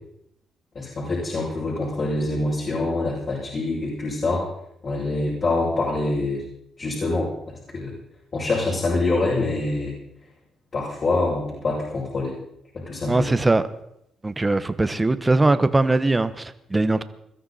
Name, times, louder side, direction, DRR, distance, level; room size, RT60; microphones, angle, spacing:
voice 1, 0.7-4.5 4.8-6.4 6.8-7.9 8.3-9.9 10.7-12.4 12.7-13.3, left 2 dB, 45° left, -6 dB, 6.7 m, -25 dB
voice 2, 13.1-13.6 14.2-17.0, right 2 dB, 20° right, 12 dB, 1.1 m, -20 dB
22.0 x 13.5 x 4.2 m, 0.77 s
cardioid pair, 90°, 0 cm